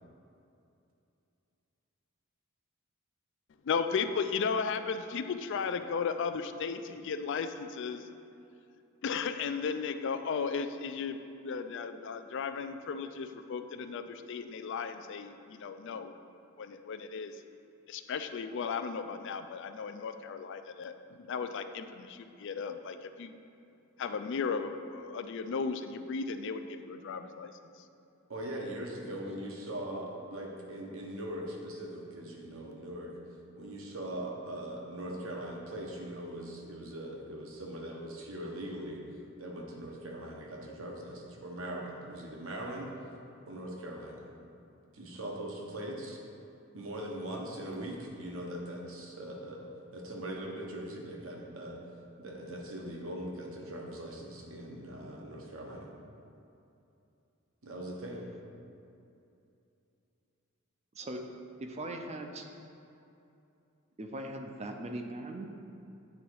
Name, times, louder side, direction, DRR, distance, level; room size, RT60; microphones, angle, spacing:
voice 1, 3.6-8.1 9.0-16.1 16.6-17.4 17.9-23.3 24.0-27.5, left 5 dB, 55° left, 9 dB, 0.3 m, -35 dB
voice 2, 28.3-33.1 33.5-39.0 39.4-42.9 43.5-44.3 44.9-46.2 46.7-51.8 52.2-55.9 57.6-58.2, right 1 dB, 65° right, -1 dB, 1.1 m, -41 dB
voice 3, 61.6-62.4 64.0-65.5, right 1 dB, 30° right, 4 dB, 0.5 m, -39 dB
8.8 x 3.9 x 4.7 m, 2.7 s
head